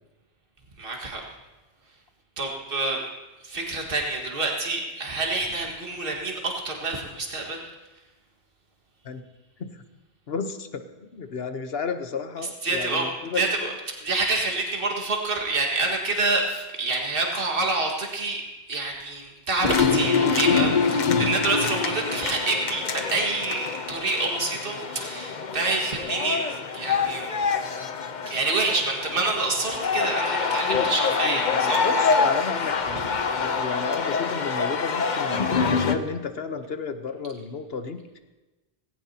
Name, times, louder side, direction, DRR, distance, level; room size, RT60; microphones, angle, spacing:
voice 1, 0.8-1.3 2.4-3.1 3.4-7.7 12.6-13.7 14.0-18.4 18.7-26.4 26.7-27.4 28.3-31.8, right 3 dB, 60° right, 0 dB, 2.0 m, -27 dB
voice 2, 10.3-13.4 30.7-30.9 31.2-38.2, left 5 dB, 70° left, 8 dB, 1.2 m, -32 dB
sound 1, 19.6-36.0, left 5 dB, 50° left, 0.9 m, -25 dB
18.5 x 17.0 x 2.9 m, 1.1 s
omnidirectional pair, 1.1 m